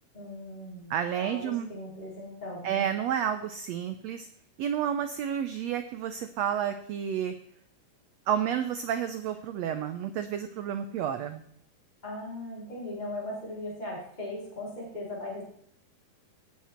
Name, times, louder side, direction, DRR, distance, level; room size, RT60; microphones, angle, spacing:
voice 1, 0.1-2.8 11.2-11.3 12.0-15.4, left 1 dB, 10° left, -5 dB, 3.6 m, -39 dB
voice 2, 0.9-1.7 2.6-4.3 4.6-7.3 8.3-11.4, right 9 dB, 85° right, 9 dB, 1.5 m, -30 dB
17.0 x 7.5 x 4.4 m, 0.66 s
omnidirectional pair, 3.8 m